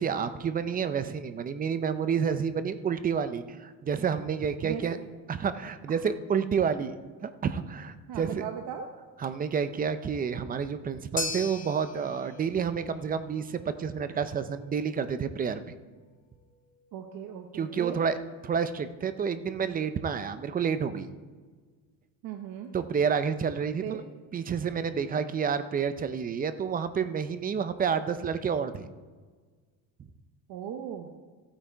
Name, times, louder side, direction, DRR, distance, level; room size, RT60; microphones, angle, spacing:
voice 1, 0.0-5.0 5.3-8.4 9.2-15.6 17.5-18.2 18.4-21.1 22.7-24.0 24.3-28.9, right 6 dB, 20° right, 12 dB, 0.5 m, -29 dB
voice 2, 8.1-8.9 16.9-18.0 22.2-22.7 23.8-24.0 30.5-31.2, right 9 dB, 55° right, 3 dB, 1.1 m, -37 dB
sound 1, 11.2-19.5, left 3 dB, 20° left, 1.0 m, -43 dB
14.5 x 8.7 x 4.5 m, 1.5 s
cardioid pair, 145°, 41 cm